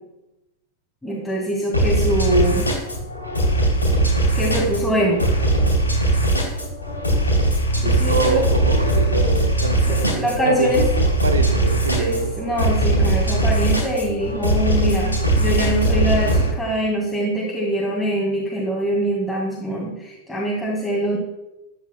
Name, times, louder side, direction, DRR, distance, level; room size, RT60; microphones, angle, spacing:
voice 1, 1.0-2.7 4.3-5.2 7.8-8.4 8.7-8.8 9.9-10.8 12.0-21.2, equal, 5° left, -5 dB, 1.9 m, -23 dB
sound 1, 1.7-16.5, right 1 dB, 80° left, 3.0 m, -20 dB
voice 2, 8.1-12.3, right 4 dB, 75° right, 8 dB, 0.7 m, -25 dB
12.0 x 8.3 x 2.2 m, 0.93 s
figure-of-eight pair, 90°, 0 cm